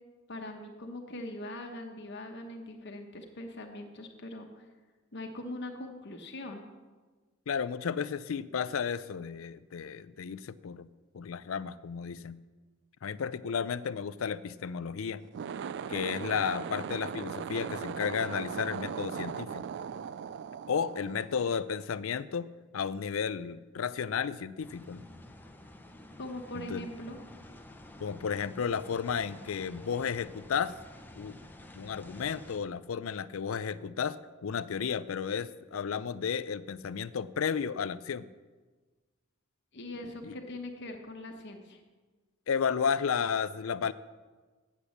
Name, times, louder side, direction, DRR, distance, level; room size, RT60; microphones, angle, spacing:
voice 1, 0.3-4.7 5.1-6.6 26.2-27.2 39.7-41.8, left 1 dB, 55° left, 3 dB, 1.1 m, -41 dB
voice 2, 7.5-10.9 11.1-12.4 13.0-15.2 15.9-19.6 20.7-25.0 26.5-26.8 28.0-30.7 31.2-31.4 31.7-38.3 40.2-40.3 42.5-43.9, left 6 dB, 75° left, 16 dB, 0.4 m, -33 dB
sound 1, 15.2-21.8, right 7 dB, 60° right, 0.3 m, -38 dB
sound 2, 24.6-32.6, left 1 dB, 10° left, 0.7 m, -50 dB
8.3 x 8.3 x 7.1 m, 1.3 s
head